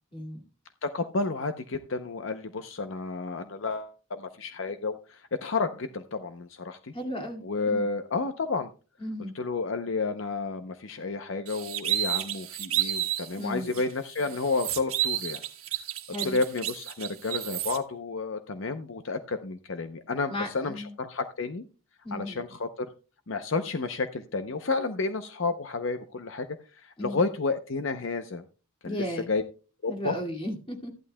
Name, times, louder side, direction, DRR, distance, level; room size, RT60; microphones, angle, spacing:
voice 1, 0.1-0.4 6.9-7.9 9.0-9.3 13.4-13.8 16.1-16.4 20.3-20.9 22.0-22.4 27.0-27.2 28.8-29.3 29.9-30.9, equal, 25° left, 3 dB, 2.2 m, -35 dB
voice 2, 0.8-6.9 7.4-8.7 9.3-15.4 16.2-21.6 22.1-22.9 23.3-26.5 26.7-28.4 28.8-29.4 29.8-30.2, left 3 dB, 60° left, 9 dB, 0.7 m, -31 dB
sound 1, 11.5-13.3 13.7-13.8 14.2-17.8, right 13 dB, 80° right, 1.4 m, -31 dB
14.5 x 11.5 x 2.2 m, 0.34 s
head